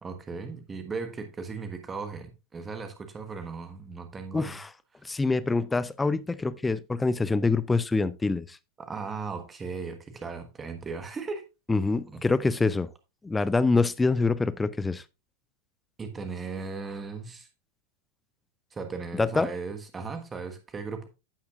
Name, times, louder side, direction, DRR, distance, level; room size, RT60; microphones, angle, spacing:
voice 1, 0.0-4.6 8.8-11.5 12.1-12.2 16.0-17.5 18.7-21.1, right 4 dB, 15° right, 1.4 m, -37 dB
voice 2, 4.3-4.7 5.0-8.6 11.7-12.9 13.2-15.0 19.2-19.5, left 3 dB, 10° left, 0.5 m, -25 dB
15.5 x 5.8 x 2.4 m
figure-of-eight pair, 90°, 0 cm